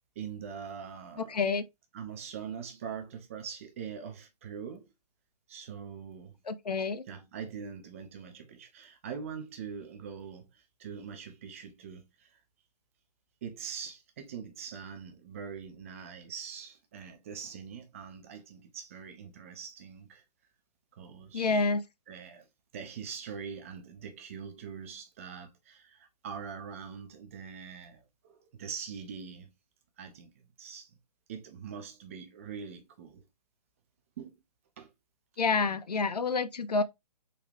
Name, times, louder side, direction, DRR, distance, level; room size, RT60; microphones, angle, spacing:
voice 1, 0.2-1.4 1.9-4.9 5.5-6.4 7.1-12.4 13.4-20.2 20.9-21.7 22.1-22.5 22.7-29.5 30.0-31.0 31.3-33.2 34.2-34.3 34.8-34.9, right 7 dB, 20° right, 0.4 m, -43 dB
voice 2, 1.2-1.6 6.5-7.0 21.3-21.8 35.4-36.8, left 4 dB, 75° left, 0.5 m, -28 dB
3.7 x 2.3 x 3.1 m
figure-of-eight pair, 130°, 21 cm